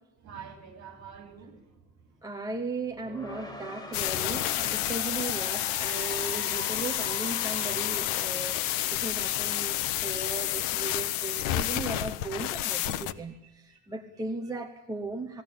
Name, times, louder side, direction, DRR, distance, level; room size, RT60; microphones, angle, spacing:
voice 1, 0.2-2.2 13.1-13.8 14.1-14.2, right 7 dB, 35° right, 4 dB, 4.1 m, -48 dB
voice 2, 2.2-15.4, right 3 dB, 5° right, 2 dB, 0.8 m, -37 dB
sound 1, 2.8-9.8, equal, 10° left, 1.6 m, -43 dB
sound 2, 3.9-13.1, left 14 dB, 90° left, 1.1 m, -30 dB
20.5 x 16.5 x 8.5 m, 0.97 s
cardioid pair, 175°, 48 cm